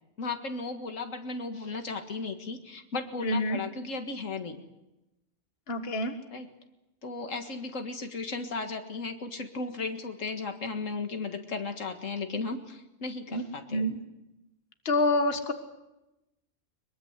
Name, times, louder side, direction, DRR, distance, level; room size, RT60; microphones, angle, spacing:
voice 1, 0.2-4.6 6.3-6.5 7.0-13.9, left 3 dB, 85° left, 6 dB, 2.2 m, -35 dB
voice 2, 3.2-3.6 5.7-6.1 13.3-13.4 13.7-14.0 14.9-15.5, left 1 dB, 50° left, 7 dB, 1.9 m, -27 dB
23.0 x 22.5 x 8.2 m, 0.96 s
omnidirectional pair, 1.3 m